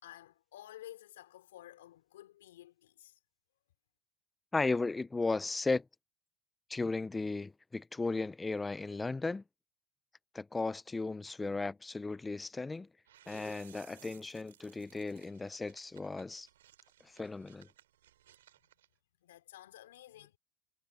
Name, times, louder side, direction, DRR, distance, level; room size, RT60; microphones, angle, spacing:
voice 1, 0.0-3.2 19.2-20.4, left 13 dB, 85° left, 4.1 m, -52 dB
voice 2, 4.5-5.8 6.7-9.4 10.3-12.9 13.3-16.5 17.0-17.7, left 3 dB, 15° left, 0.6 m, -35 dB
sound 1, 13.1-18.9, right 12 dB, 90° right, 4.6 m, -61 dB
hypercardioid pair, 90°, 0 cm